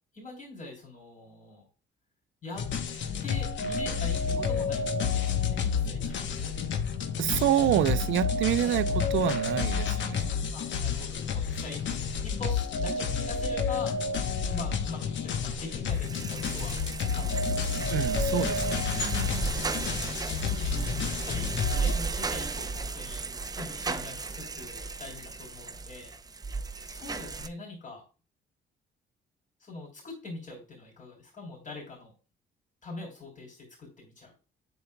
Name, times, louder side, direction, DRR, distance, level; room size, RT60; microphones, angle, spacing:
voice 1, 0.1-1.7 2.4-2.7 3.2-6.7 8.6-8.8 10.5-11.9 12.2-14.0 14.5-17.9 19.3-23.3 23.5-26.1 26.6-28.0 29.6-32.1 32.8-34.3, left 2 dB, 40° left, 3.5 m, -43 dB
sound 1, 2.5-21.9, left 5 dB, 70° left, 0.9 m, -30 dB
voice 2, 7.2-10.3 17.9-19.5, right 12 dB, 75° right, 0.5 m, -28 dB
sound 2, 15.9-27.5, right 4 dB, 20° right, 0.5 m, -34 dB
7.8 x 6.9 x 2.2 m
cardioid pair, 90°, 20 cm